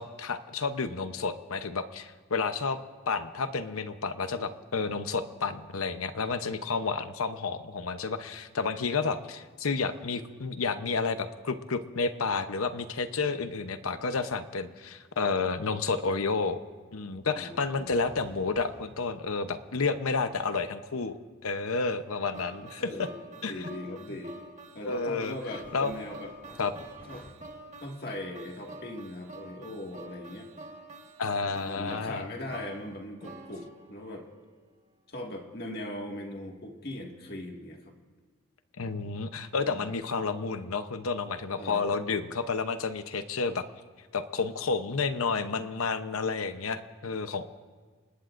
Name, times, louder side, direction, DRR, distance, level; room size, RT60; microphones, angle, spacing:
voice 1, 0.0-2.8 3.1-16.6 16.9-22.9 23.4-23.7 24.8-25.3 25.7-25.9 26.6-26.7 31.2-32.3 38.8-43.6 44.1-47.5, left 4 dB, 85° left, 10 dB, 0.8 m, -31 dB
voice 2, 17.3-17.9 22.8-23.2 23.5-24.3 24.8-26.3 27.1-27.3 27.8-30.5 31.4-34.3 35.1-37.9 39.6-39.9 41.6-41.9, left 1 dB, 45° left, 1 dB, 1.9 m, -40 dB
sound 1, 17.7-21.6 24.1-24.6 25.0-27.3, equal, 10° left, 2.4 m, -55 dB
sound 2, 22.3-34.5, right 2 dB, 35° right, 1.5 m, -47 dB
29.0 x 19.5 x 2.6 m, 1.4 s
head